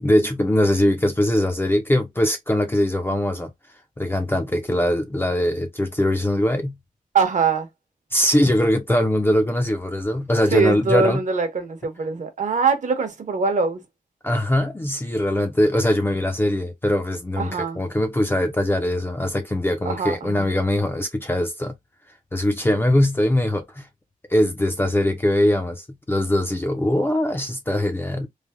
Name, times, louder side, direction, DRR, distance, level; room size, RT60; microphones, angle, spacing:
voice 1, 0.0-3.5 4.0-6.8 8.1-11.2 14.2-21.8 22.3-23.9 24.3-28.3, left 1 dB, 15° left, 0.4 m, -21 dB
voice 2, 7.1-7.7 10.5-13.8 17.4-17.8 19.9-20.4, right 5 dB, 55° right, 0.8 m, -22 dB
3.2 x 2.1 x 2.4 m
wide cardioid pair, 150°, 15 cm